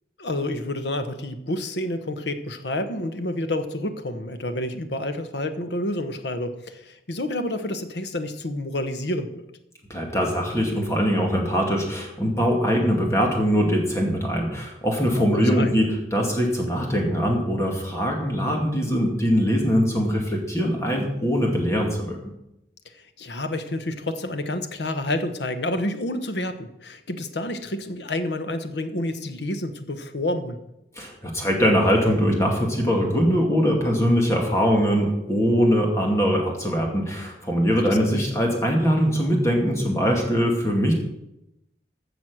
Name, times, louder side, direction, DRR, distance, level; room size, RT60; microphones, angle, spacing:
voice 1, 0.2-9.4 15.2-15.8 22.8-30.6 38.1-38.2, left 1 dB, 80° left, 8 dB, 1.1 m, -29 dB
voice 2, 9.9-22.2 31.0-40.9, equal, 15° left, 0 dB, 2.2 m, -22 dB
15.0 x 6.3 x 6.3 m, 0.88 s
head